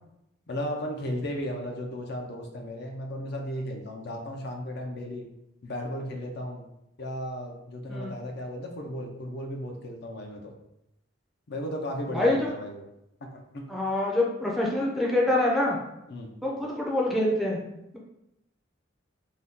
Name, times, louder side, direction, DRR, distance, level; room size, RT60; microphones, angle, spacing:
voice 1, 0.5-5.2 5.6-6.6 7.0-10.5 11.5-12.9 13.2-13.7 16.1-16.3, equal, 55° left, 2 dB, 0.5 m, -35 dB
voice 2, 12.1-12.5 13.7-15.8 16.4-17.6, left 1 dB, ahead, -3 dB, 0.5 m, -25 dB
2.7 x 2.2 x 3.5 m, 0.85 s
head